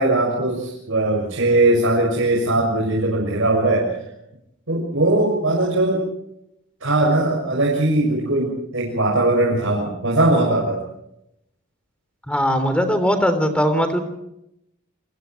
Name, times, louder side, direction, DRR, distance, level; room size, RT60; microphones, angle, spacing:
voice 1, 0.0-3.9 4.7-6.0 6.8-10.8, right 2 dB, 70° right, -3 dB, 6.7 m, -20 dB
voice 2, 12.3-14.0, equal, 5° left, 8 dB, 3.6 m, -19 dB
30.0 x 24.0 x 4.7 m, 0.82 s
head